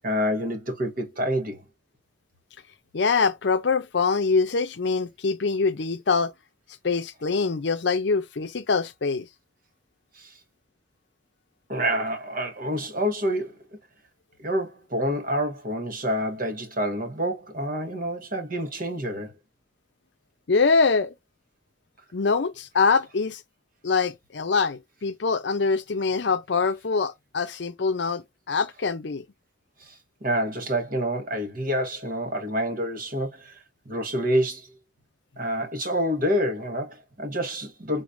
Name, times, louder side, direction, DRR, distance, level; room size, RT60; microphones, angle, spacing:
voice 1, 0.0-1.6 10.1-10.3 11.7-13.6 14.4-19.3 29.8-34.7 35.4-38.0, equal, 50° right, 1.2 m, -28 dB
voice 2, 2.9-6.3 6.8-9.3 20.5-21.1 22.1-23.4 23.8-29.2, left 4 dB, 65° left, 0.6 m, -24 dB
4.0 x 3.2 x 2.5 m
head